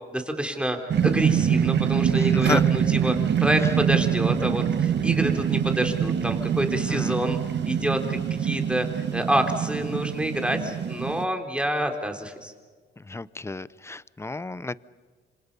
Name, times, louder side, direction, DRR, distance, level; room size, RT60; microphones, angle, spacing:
voice 1, 0.1-0.8 1.0-7.4 7.6-12.5, right 1 dB, 5° right, 4 dB, 3.9 m, -27 dB
sound 1, 0.9-11.2, right 8 dB, 60° right, 1.5 m, -24 dB
voice 2, 2.1-2.6 6.9-7.2 13.1-14.8, left 3 dB, 15° left, 18 dB, 0.7 m, -31 dB
27.5 x 26.5 x 5.6 m, 1.5 s
cardioid pair, 90°, 20 cm